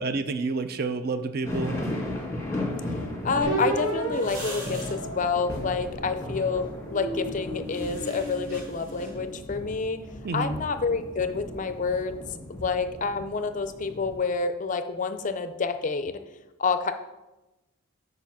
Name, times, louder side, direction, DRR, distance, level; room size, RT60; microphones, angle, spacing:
voice 1, 0.0-1.8 10.2-10.6, right 3 dB, 45° right, 11 dB, 0.4 m, -29 dB
sound 1, 1.4-14.2, left 1 dB, 15° left, 1.3 m, -36 dB
voice 2, 3.2-10.0 10.3-12.1 12.5-16.2 16.6-16.9, left 4 dB, 35° left, 10 dB, 0.4 m, -28 dB
sound 2, 3.2-9.4, right 1 dB, 80° right, 3.0 m, -46 dB
sound 3, 3.4-6.1 6.7-9.2, right 2 dB, 60° right, 1.5 m, -33 dB
7.0 x 4.9 x 5.9 m, 1.1 s
head